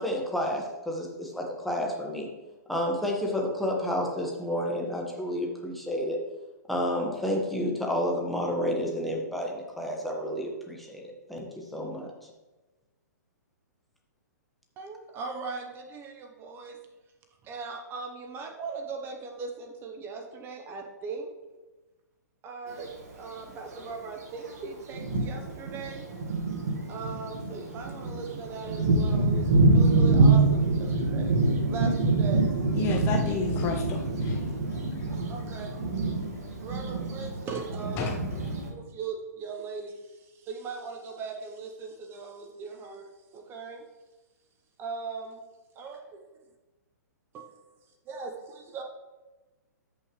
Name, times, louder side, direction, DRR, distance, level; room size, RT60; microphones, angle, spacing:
voice 1, 0.0-2.3 2.7-6.2 6.7-12.1, equal, ahead, -1 dB, 1.6 m, -30 dB
voice 2, 14.8-16.8 17.4-21.3 22.4-22.9 23.2-26.0 26.9-31.4 31.7-32.5 35.3-35.7 36.6-43.8 44.8-45.4 45.7-46.2 47.3-47.5 48.1-48.8, right 4 dB, 25° right, 3 dB, 1.1 m, -39 dB
Thunder, 22.7-22.8 23.8-23.9 24.5-24.6 24.9-38.7, right 3 dB, 55° right, 1.9 m, -25 dB
voice 3, 32.8-34.4 38.0-38.2, left 6 dB, 25° left, 3 dB, 0.7 m, -31 dB
13.0 x 5.8 x 3.3 m, 1.2 s
figure-of-eight pair, 120°, 10 cm